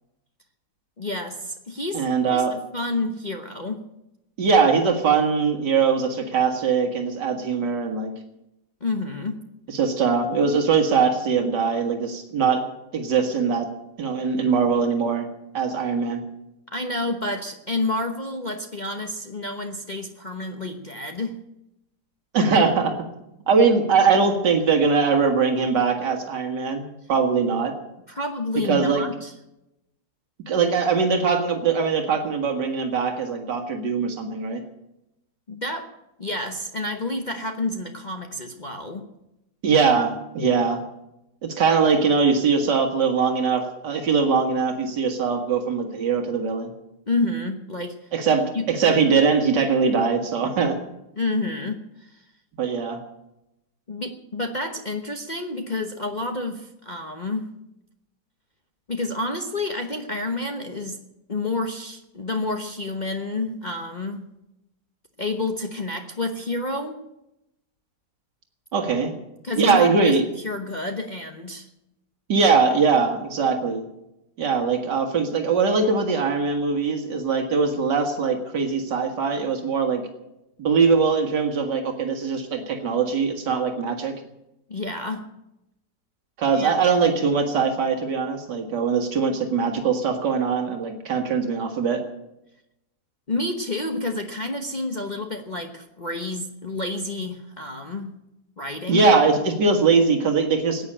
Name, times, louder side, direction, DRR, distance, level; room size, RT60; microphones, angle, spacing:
voice 1, 1.0-3.8 8.8-9.4 16.7-21.4 28.1-29.3 35.5-35.9 36.2-39.1 47.1-48.0 48.5-48.7 51.2-52.2 53.9-57.5 58.9-61.0 61.3-64.3 65.2-67.0 69.4-70.2 70.4-71.7 84.7-85.2 86.5-86.8 93.3-98.1 98.6-99.1, left 2 dB, 30° left, 4 dB, 1.0 m, -29 dB
voice 2, 1.9-2.5 4.4-8.1 9.7-12.6 12.9-13.7 14.0-15.3 15.5-16.2 22.3-23.0 23.5-27.7 28.6-29.0 30.5-34.6 39.6-40.8 41.4-46.7 48.1-50.8 52.6-53.0 68.7-69.1 69.6-70.2 72.3-73.8 74.4-80.1 80.6-84.1 86.4-92.0 98.9-100.9, right 5 dB, 85° right, 4 dB, 2.3 m, -21 dB
15.5 x 9.3 x 8.7 m, 0.89 s
omnidirectional pair, 1.8 m